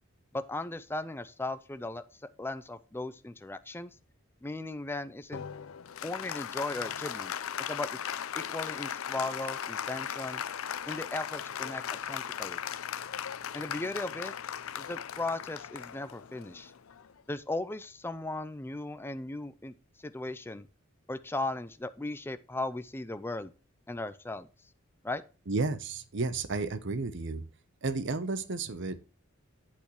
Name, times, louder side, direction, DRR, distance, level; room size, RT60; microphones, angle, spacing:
voice 1, 0.3-3.9 4.4-5.4 6.0-7.3 7.6-8.0 8.3-10.4 10.9-11.8 12.1-12.6 13.5-14.3 14.8-16.7 17.3-20.7 21.1-23.5 23.9-24.5 25.0-25.2, left 2 dB, 10° left, 0.4 m, -37 dB
Applause, 5.3-17.2, left 9 dB, 85° left, 0.5 m, -38 dB
voice 2, 25.5-27.4 27.8-29.0, right 3 dB, 60° right, 0.8 m, -32 dB
8.6 x 8.4 x 3.1 m
head